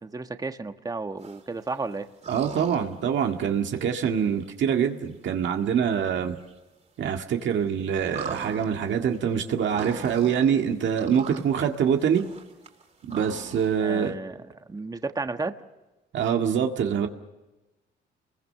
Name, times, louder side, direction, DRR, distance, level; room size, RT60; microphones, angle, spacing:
voice 1, 0.0-2.1 11.3-11.4 13.8-15.5, right 3 dB, 20° right, 8 dB, 1.3 m, -33 dB
sound 1, 1.2-1.7 2.2-2.9 3.4-3.5 4.4-4.5 5.7-5.8 6.1-6.2 6.4-6.5 7.1-7.4 8.1-10.5 10.9-11.4 11.7-13.7, right 5 dB, 35° right, 3.7 m, -39 dB
voice 2, 2.3-6.4 7.0-12.2 13.1-14.1 16.1-17.1, right 8 dB, 70° right, 3 dB, 1.9 m, -25 dB
29.5 x 22.0 x 6.7 m, 1.1 s
cardioid pair, 90°, 20 cm